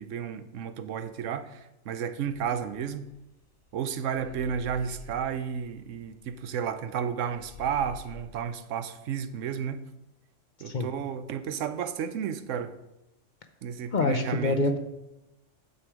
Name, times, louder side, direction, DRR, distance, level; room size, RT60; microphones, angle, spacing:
voice 1, 0.0-3.0 3.7-9.8 10.6-12.7 13.6-14.7, right 7 dB, 80° right, 12 dB, 1.0 m, -32 dB
sound 1, 2.3-3.7 4.1-7.0 7.3-8.2, left 6 dB, 30° left, 1.5 m, -48 dB
voice 2, 13.9-14.8, left 2 dB, 50° left, 6 dB, 0.7 m, -26 dB
8.9 x 6.9 x 4.7 m, 0.94 s
omnidirectional pair, 1.3 m